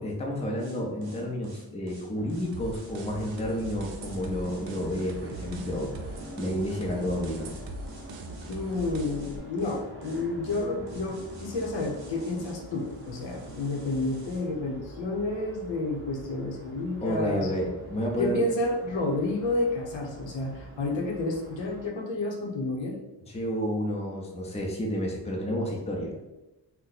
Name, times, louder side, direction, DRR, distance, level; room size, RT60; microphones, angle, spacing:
voice 1, 0.0-7.6 17.0-18.4 23.3-26.1, equal, 15° left, -1 dB, 0.5 m, -31 dB
sound 1, 0.6-14.5, right 2 dB, 55° right, 0.9 m, -49 dB
sound 2, 2.2-21.9, right 1 dB, 30° right, 0.6 m, -46 dB
sound 3, 2.5-9.4, right 2 dB, 90° right, 0.6 m, -41 dB
voice 2, 8.5-17.5 18.2-23.0, left 2 dB, 85° left, 1 dB, 0.8 m, -30 dB
2.8 x 2.2 x 3.9 m, 1.0 s
wide cardioid pair, 140°, 44 cm